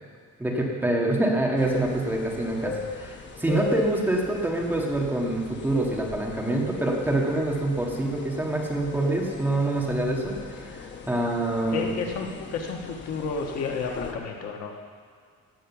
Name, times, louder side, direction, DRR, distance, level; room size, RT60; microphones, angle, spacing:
voice 1, 0.4-12.0, right 1 dB, 5° right, -2 dB, 1.7 m, -26 dB
sound 1, 1.6-14.1, left 4 dB, 40° left, 1.0 m, -39 dB
voice 2, 11.7-14.7, left 5 dB, 60° left, 2 dB, 1.5 m, -31 dB
17.5 x 6.5 x 7.3 m, 2.1 s
cardioid pair, 175°, 29 cm